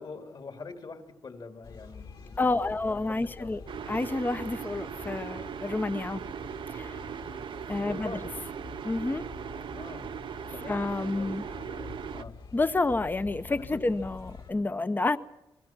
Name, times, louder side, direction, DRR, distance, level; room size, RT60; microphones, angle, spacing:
voice 1, 0.0-3.7 7.8-8.3 9.7-10.1 10.5-12.3 13.5-13.8, left 4 dB, 55° left, 6 dB, 3.0 m, -44 dB
sound 1, 1.6-14.5, left 5 dB, 70° left, 5.6 m, -47 dB
voice 2, 2.4-3.6 3.9-6.2 6.7-6.9 7.7-8.1 8.8-9.3 10.7-11.5 12.5-15.2, left 2 dB, 20° left, 13 dB, 0.7 m, -29 dB
sound 2, 3.7-12.2, right 8 dB, 70° right, 0.7 m, -39 dB
29.0 x 20.5 x 6.1 m, 1.0 s
cardioid pair, 85°, 9 cm